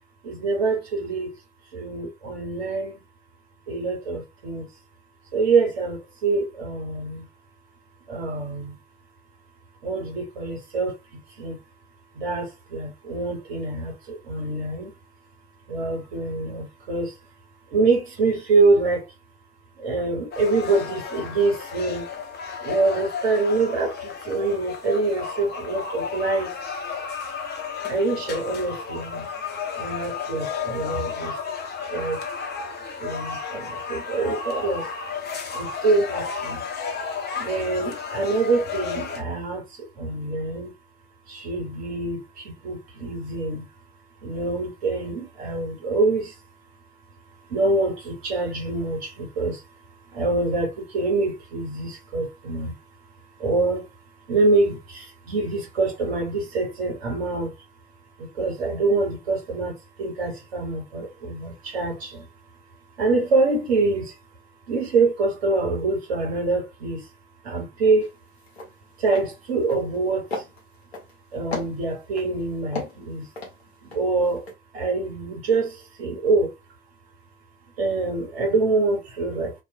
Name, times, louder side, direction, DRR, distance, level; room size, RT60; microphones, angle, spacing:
voice 1, 0.2-1.3 1.7-3.0 3.7-4.7 5.3-7.3 8.1-8.8 9.8-11.6 12.1-14.9 15.7-17.2 17.7-19.0 19.8-22.0 22.6-26.5 27.9-29.3 29.7-31.3 31.9-32.2 33.0-34.9 35.5-36.6 37.4-39.6 40.0-40.7 41.3-43.7 44.2-46.3 47.5-49.6 50.1-52.7 53.4-53.9 54.3-57.5 58.2-62.3 63.0-64.2 64.7-67.0 67.4-68.1 69.0-70.4 71.3-73.3 73.8-74.5 74.7-76.5 77.8-79.5, right 3 dB, 80° right, 1.0 m, -25 dB
sound 1, 20.3-39.2, left 5 dB, 30° left, 0.8 m, -33 dB
sound 2, 68.0-68.2 68.5-68.7 69.1-69.3 69.6-70.0 70.3-71.1 71.5-72.3 72.7-74.0 74.4-74.5, left 3 dB, 85° left, 0.7 m, -34 dB
2.3 x 2.1 x 2.6 m
figure-of-eight pair, 50°, 31 cm